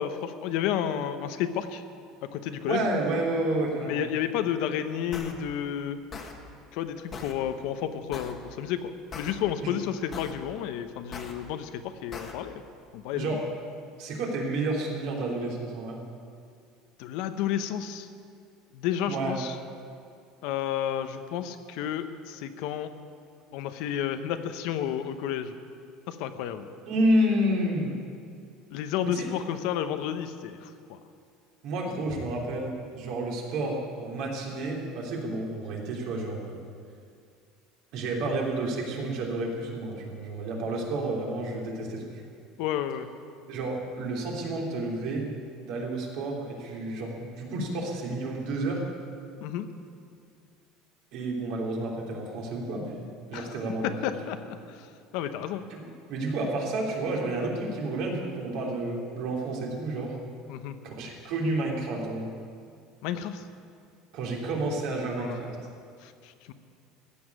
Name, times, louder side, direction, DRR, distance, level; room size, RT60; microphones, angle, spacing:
voice 1, 0.0-1.8 2.2-2.8 3.8-6.0 6.7-12.6 12.9-13.4 17.0-18.1 18.7-19.5 20.4-22.9 23.5-25.6 26.1-26.7 28.7-31.0 42.6-43.1 49.4-49.7 53.3-55.6 60.5-60.8 63.0-63.5 65.1-65.7 66.0-66.5, left 9 dB, 65° left, 9 dB, 0.9 m, -31 dB
voice 2, 2.7-4.0 9.6-9.7 13.1-13.4 14.0-16.0 19.1-19.4 26.9-27.9 29.1-29.3 31.6-36.6 37.9-42.2 43.5-45.3 45.6-48.8 51.1-53.0 53.3-53.9 55.7-60.2 61.0-62.3 64.1-65.5, right 1 dB, 60° right, -1 dB, 3.2 m, -30 dB
sound 1, 5.1-5.3 6.1-6.3 7.1-7.3 8.1-8.3 9.1-9.3 10.1-10.3 11.1-11.3 12.1-12.3, left 5 dB, 25° left, 1.3 m, -39 dB
15.0 x 7.2 x 9.7 m, 2.4 s
cardioid pair, 160°, 0 cm